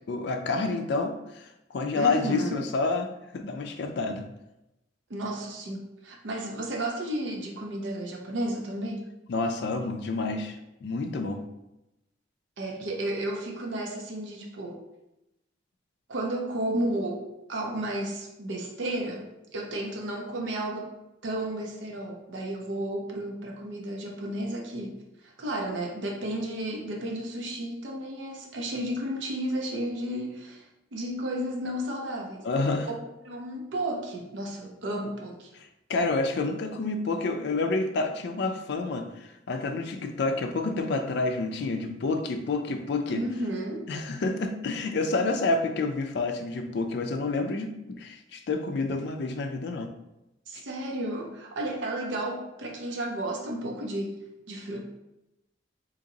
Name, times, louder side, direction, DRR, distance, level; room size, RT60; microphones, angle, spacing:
voice 1, 0.1-4.2 9.3-10.6 10.8-11.4 32.4-32.9 35.5-43.2 43.9-49.9 50.5-50.6, left 3 dB, 65° left, 5 dB, 0.4 m, -29 dB
voice 2, 1.9-2.6 5.1-9.1 12.6-14.8 16.1-19.3 19.5-21.0 21.2-30.7 30.9-32.5 33.2-35.5 43.1-43.9 50.5-54.8, right 1 dB, 80° right, 1 dB, 0.6 m, -33 dB
2.9 x 2.7 x 3.8 m, 0.90 s
head